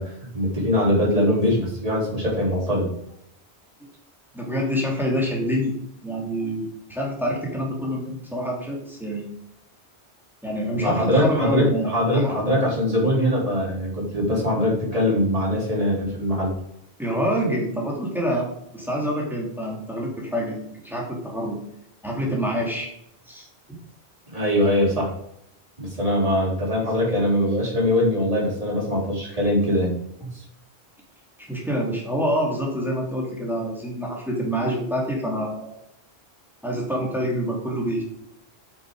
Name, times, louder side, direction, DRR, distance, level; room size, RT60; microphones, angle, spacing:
voice 1, 0.0-2.9 10.8-16.5 24.3-25.1 25.8-29.9 30.2-30.4, left 1 dB, 35° right, -5 dB, 4.3 m, -22 dB
voice 2, 4.3-5.7 6.0-9.3 10.4-12.3 17.0-21.6 22.0-22.9 23.3-23.5 31.5-35.8 36.6-38.0, equal, ahead, -2 dB, 2.7 m, -26 dB
8.5 x 7.7 x 4.8 m, 0.74 s
omnidirectional pair, 1.1 m